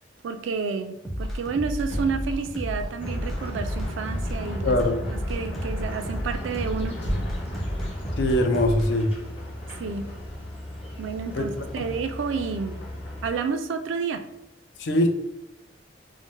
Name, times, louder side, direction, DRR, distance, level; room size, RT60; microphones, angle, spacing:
voice 1, 0.2-4.8 5.1-7.0 9.8-10.1 11.0-12.8 13.2-14.2, right 5 dB, 90° right, 9 dB, 0.3 m, -30 dB
sound 1, 1.0-8.9, equal, ahead, 0.4 m, -32 dB
Motor vehicle (road), 1.8-5.3 7.0-9.6 9.8-10.1, equal, 90° left, 1.0 m, -37 dB
sound 2, 3.0-13.3, left 1 dB, 30° left, 1.0 m, -36 dB
voice 2, 4.6-5.1 8.2-9.1 11.3-11.4 11.8-11.9 14.8-15.1, left 1 dB, 65° left, 5 dB, 0.4 m, -22 dB
2.5 x 2.0 x 3.6 m, 0.91 s
head